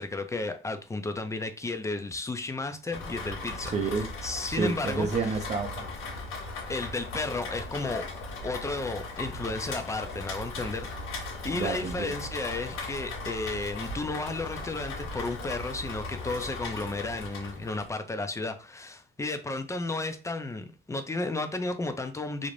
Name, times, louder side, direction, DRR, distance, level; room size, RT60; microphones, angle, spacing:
voice 1, 0.0-3.7 4.2-5.1 6.7-8.0 8.4-10.9 11.4-22.5, left 2 dB, 15° left, 0.4 m, -33 dB
Rain, 2.9-17.9, left 3 dB, 90° left, 0.7 m, -38 dB
voice 2, 3.7-4.1 4.5-5.9 11.5-12.2, right 4 dB, 35° right, 0.6 m, -29 dB
2.5 x 2.1 x 3.1 m
cardioid pair, 90°, 20 cm